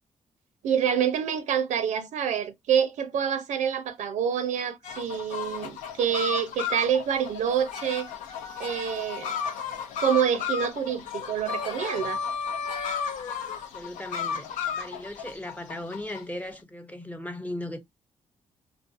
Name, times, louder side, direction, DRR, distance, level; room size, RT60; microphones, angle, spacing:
voice 1, 0.6-8.1 8.6-9.4 10.0-12.2, right 8 dB, 75° right, 0.5 m, -27 dB
sound 1, 4.8-16.2, left 6 dB, 90° left, 0.5 m, -34 dB
voice 2, 13.7-17.8, left 1 dB, 10° left, 0.6 m, -37 dB
2.4 x 2.2 x 2.4 m
supercardioid pair, 60°, 13 cm